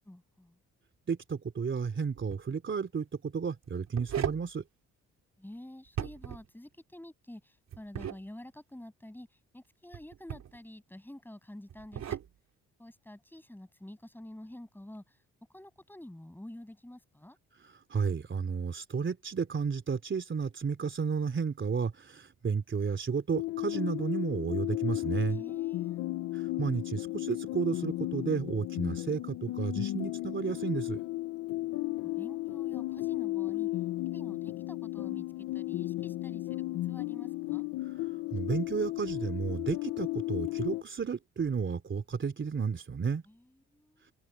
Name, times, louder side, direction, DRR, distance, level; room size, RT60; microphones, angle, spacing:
voice 1, 0.1-0.6 5.4-12.2 12.8-15.2 15.5-17.4 25.3-26.0 31.7-33.7 34.0-37.7 43.3-44.1, left 1 dB, 5° left, 8.0 m, -49 dB
voice 2, 1.1-4.6 17.6-25.4 26.3-31.0 38.3-43.2, right 6 dB, 40° right, 3.4 m, -32 dB
sound 1, 2.2-2.4 3.6-4.5 5.9-6.5 7.7-8.2 9.9-10.6 11.7-12.3, right 9 dB, 65° right, 3.0 m, -36 dB
sound 2, 23.3-40.8, left 17 dB, 85° left, 0.8 m, -34 dB
open air
cardioid pair, 90°, 30 cm